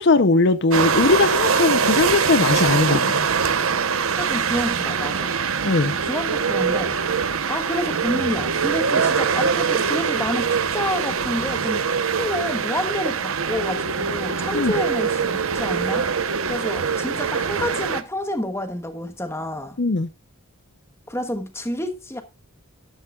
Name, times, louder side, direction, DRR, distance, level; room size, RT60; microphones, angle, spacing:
voice 1, 0.0-3.3 5.6-5.9 14.5-14.7 19.8-20.1, left 3 dB, 50° left, 0.6 m, -19 dB
sound 1, 0.7-18.0, right 6 dB, 70° right, 0.9 m, -23 dB
voice 2, 4.1-5.3 6.0-11.9 12.1-16.1 16.5-19.8 21.1-22.2, left 1 dB, 10° left, 1.3 m, -29 dB
12.5 x 12.0 x 2.3 m
head